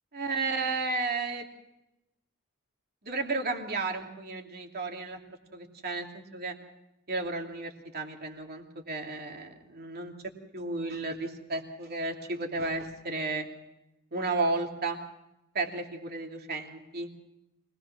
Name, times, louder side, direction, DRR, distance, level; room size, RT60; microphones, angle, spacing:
voice 1, 0.1-1.4 3.0-5.2 5.5-6.5 7.1-10.1 10.5-13.5 14.1-15.0 15.5-17.1, right 3 dB, 45° right, 2 dB, 2.8 m, -33 dB
24.5 x 20.0 x 6.0 m, 0.92 s
head